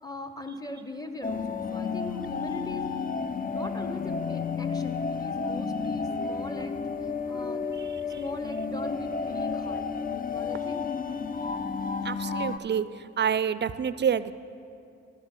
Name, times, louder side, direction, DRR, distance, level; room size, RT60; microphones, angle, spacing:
voice 1, 0.0-2.9 3.5-6.7 7.0-7.7 8.0-10.9, left 2 dB, 15° left, 7 dB, 1.0 m, -40 dB
sound 1, 1.2-12.6, left 5 dB, 30° left, 0.5 m, -31 dB
voice 2, 7.8-8.2 10.6-10.8 12.0-14.3, right 8 dB, 35° right, 15 dB, 0.4 m, -28 dB
13.5 x 10.0 x 3.8 m, 2.5 s
supercardioid pair, 45°, 30 cm